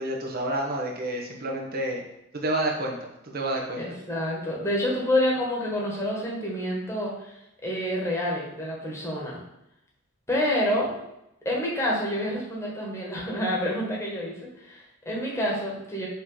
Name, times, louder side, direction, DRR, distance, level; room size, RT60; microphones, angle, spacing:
voice 1, 0.0-2.0 2.3-3.0 3.3-3.8, right 1 dB, 45° right, 0 dB, 1.2 m, -29 dB
voice 2, 3.8-7.3 7.6-9.4 10.3-11.0 11.4-14.3 14.6-16.1, left 1 dB, 15° left, -4 dB, 1.5 m, -28 dB
5.7 x 3.2 x 5.6 m, 0.85 s
head